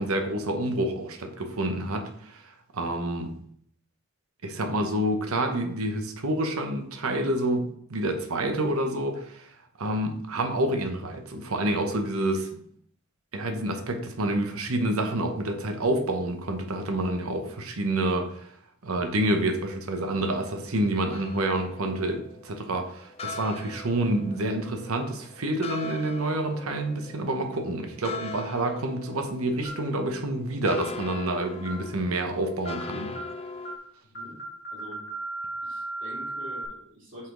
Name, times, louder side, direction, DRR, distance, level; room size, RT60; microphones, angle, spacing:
voice 1, 0.0-3.3 4.4-9.5 9.8-12.5 13.3-18.5 18.8-33.2, right 1 dB, 85° right, 5 dB, 0.9 m, -28 dB
sound 1, 21.1-33.8, left 3 dB, 30° left, 0.4 m, -41 dB
sound 2, 29.6-29.9 30.6-30.9 31.6-31.9 32.6-32.9 33.1-33.4 33.6-33.9 34.1-36.6, right 2 dB, 45° left, 1.0 m, -36 dB
voice 2, 35.6-37.3, equal, 60° right, -7 dB, 2.9 m, -45 dB
5.7 x 4.8 x 3.8 m, 0.63 s
head